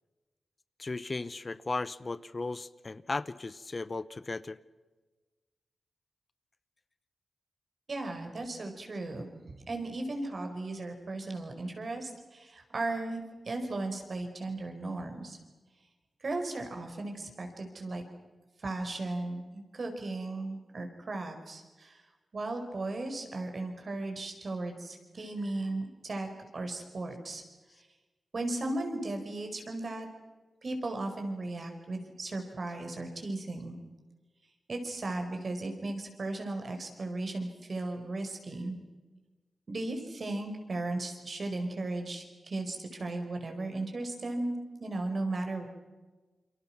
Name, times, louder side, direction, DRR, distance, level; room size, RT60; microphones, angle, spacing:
voice 1, 0.8-4.6, left 3 dB, 45° left, 16 dB, 0.9 m, -36 dB
voice 2, 7.9-9.3 9.7-15.4 16.2-18.0 18.6-22.0 22.3-26.3 26.5-27.4 28.3-30.1 30.6-33.8 34.7-38.8 39.7-45.7, right 2 dB, 60° right, 5 dB, 5.0 m, -36 dB
28.5 x 24.0 x 6.1 m, 1.3 s
cardioid pair, 45°, 0 cm